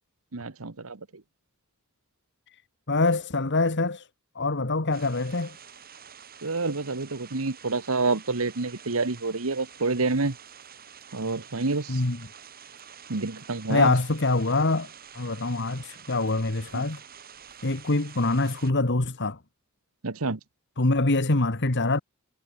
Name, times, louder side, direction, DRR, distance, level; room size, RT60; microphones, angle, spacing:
voice 1, 0.3-1.0 6.4-10.4 11.1-12.0 13.1-13.9 16.7-16.9 20.0-20.4, right 3 dB, 70° right, 1.3 m, -28 dB
voice 2, 2.9-4.1 4.3-5.5 11.9-12.2 13.7-14.9 15.1-17.0 17.6-19.4 20.8-22.0, left 2 dB, 55° left, 1.7 m, -24 dB
sound 1, 4.9-18.7, right 8 dB, 45° right, 7.0 m, -48 dB
head